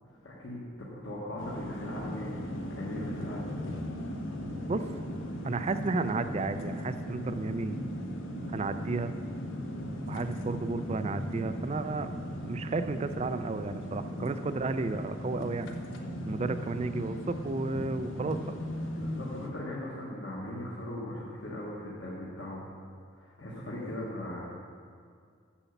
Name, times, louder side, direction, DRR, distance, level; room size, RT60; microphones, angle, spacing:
voice 1, 0.0-2.4 2.7-3.5 19.0-22.7 23.2-24.4, left 1 dB, 65° left, -6 dB, 1.4 m, -39 dB
sound 1, 1.4-19.5, equal, 80° left, 0.8 m, -37 dB
voice 2, 5.4-7.9 8.5-9.1 10.1-12.1 12.4-15.7 16.3-18.5, right 3 dB, 30° right, 10 dB, 0.3 m, -32 dB
7.1 x 6.9 x 7.0 m, 2.2 s
head